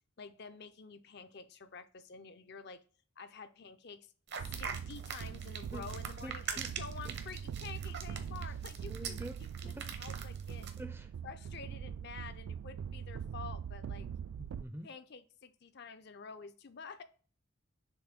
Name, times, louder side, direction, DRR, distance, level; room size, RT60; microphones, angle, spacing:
voice 1, 0.2-2.8 3.2-4.1 4.4-10.7 11.2-14.1 14.8-17.0, left 5 dB, 50° left, 10 dB, 0.5 m, -49 dB
sound 1, 4.3-10.8, right 6 dB, 55° right, 0.9 m, -43 dB
sound 2, 4.4-14.7, right 7 dB, 80° right, 0.3 m, -42 dB
voice 2, 6.2-6.7 8.9-9.4 9.7-9.9 10.8-11.1 14.4-14.9, right 1 dB, 10° right, 8 dB, 0.5 m, -45 dB
6.9 x 2.6 x 5.2 m, 0.39 s
head